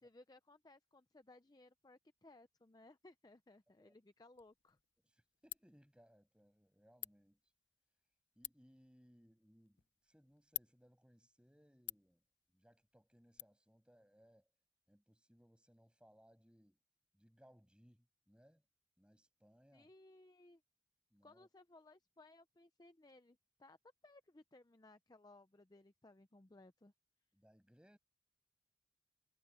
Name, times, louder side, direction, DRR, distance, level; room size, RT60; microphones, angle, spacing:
voice 1, 0.0-4.8 19.7-20.6 21.2-23.8 24.0-26.9, left 2 dB, 20° left, 0.5 m, -62 dB
Ratchet pawl, 4.3-13.4, left 16 dB, 70° left, 0.8 m, -54 dB
voice 2, 5.0-7.4 8.3-12.2 12.5-14.5 14.9-16.8 17.1-18.6 19.0-19.9 21.1-21.5 27.3-28.0, equal, 5° right, 6.9 m, -68 dB
head